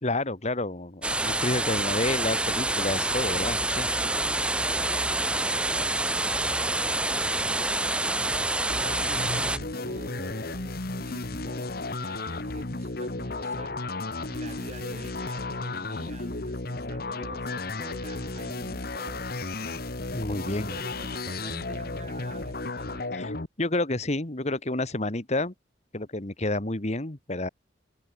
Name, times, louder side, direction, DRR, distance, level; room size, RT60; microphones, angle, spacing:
voice 1, 0.0-3.9 20.1-20.8 23.1-25.5 25.9-27.5, left 2 dB, 40° left, 1.8 m, -29 dB
sound 1, 1.0-9.6, right 2 dB, 5° right, 0.5 m, -27 dB
voice 2, 3.9-6.3 7.1-8.4 8.8-11.8 12.0-13.9 14.3-19.9 20.3-23.2, right 1 dB, 40° right, 4.3 m, -47 dB
sound 2, 8.7-23.5, left 2 dB, 55° left, 1.8 m, -34 dB
head